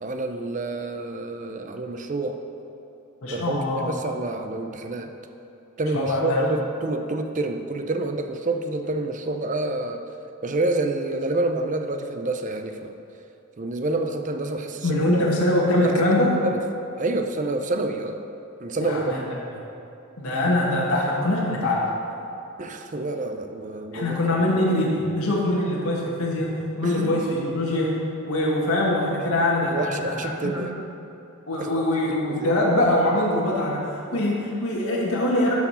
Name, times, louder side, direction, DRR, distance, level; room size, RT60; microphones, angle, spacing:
voice 1, 0.0-2.4 3.3-5.1 5.8-10.0 10.4-12.9 13.6-15.2 15.8-16.6 17.0-18.2 18.6-19.3 22.6-24.4 26.8-27.4 29.6-30.7 31.6-31.7 32.1-32.5 34.1-34.2, right 2 dB, 35° right, 6 dB, 0.6 m, -28 dB
voice 2, 3.2-3.9 5.9-6.5 14.8-16.3 18.8-19.2 20.2-21.8 23.9-26.5 26.8-27.9 28.3-30.5 31.5-35.5, left 1 dB, 80° left, -5 dB, 1.6 m, -23 dB
12.5 x 4.9 x 5.6 m, 2.9 s
head